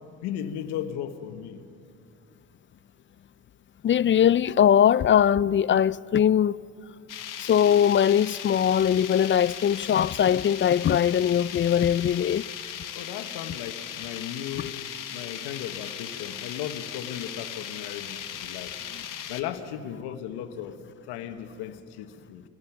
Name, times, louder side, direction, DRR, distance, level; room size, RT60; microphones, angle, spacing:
voice 1, 0.2-1.6 12.9-18.7 19.3-20.8 21.1-22.4, left 10 dB, 80° left, 1.4 m, -36 dB
voice 2, 3.8-6.6 7.4-12.5 14.6-14.7 18.9-19.0, left 9 dB, 35° left, 0.4 m, -21 dB
sound 1, 7.1-19.4, left 9 dB, 55° left, 1.5 m, -38 dB
25.5 x 18.0 x 6.0 m
supercardioid pair, 70°, 38 cm